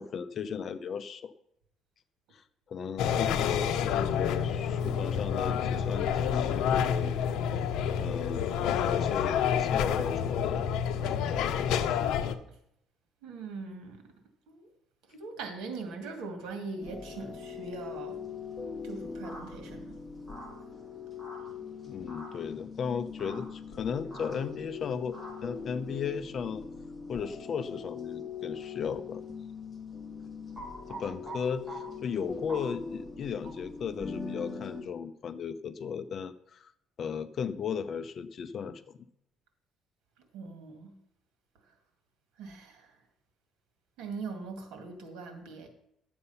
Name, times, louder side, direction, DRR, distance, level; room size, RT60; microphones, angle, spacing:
voice 1, 0.0-1.3 2.3-7.1 8.0-10.7 11.0-11.8 21.8-26.6 27.1-29.2 30.9-36.7 37.0-38.8, left 6 dB, 40° left, 11 dB, 0.6 m, -36 dB
sound 1, 3.0-12.4, left 8 dB, 75° left, 0.7 m, -28 dB
voice 2, 13.2-14.0 14.5-14.7 15.1-18.2 18.8-20.0 40.3-40.9 42.4-42.9 44.0-45.7, right 4 dB, 90° right, 6 dB, 2.1 m, -41 dB
sound 2, 16.8-34.8, left 5 dB, 15° left, 1.9 m, -42 dB
sound 3, 19.2-19.4 20.3-20.5 21.2-21.4 22.1-22.3 23.2-23.4 24.1-24.3 25.1-25.3 30.6-31.4 31.7-31.8 32.5-32.6 33.4-33.5, right 2 dB, 10° right, 4.2 m, -43 dB
11.5 x 7.9 x 5.6 m, 0.75 s
cardioid pair, 155°, 0 cm